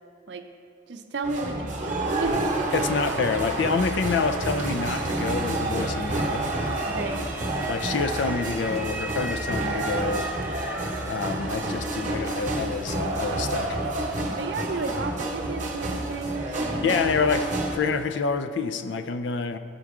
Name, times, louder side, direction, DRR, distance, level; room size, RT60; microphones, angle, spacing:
voice 1, 0.9-2.4 6.9-7.3 14.1-16.9, right 3 dB, 65° right, 7 dB, 0.5 m, -33 dB
sound 1, 1.2-17.8, right 2 dB, 40° right, 0.9 m, -29 dB
voice 2, 2.7-6.5 7.7-10.3 11.1-13.8 16.8-19.6, left 5 dB, 70° left, 10 dB, 0.4 m, -27 dB
Motor vehicle (road) / Siren, 2.7-14.6, right 1 dB, 5° right, 0.4 m, -41 dB
12.0 x 4.6 x 3.6 m, 2.5 s
head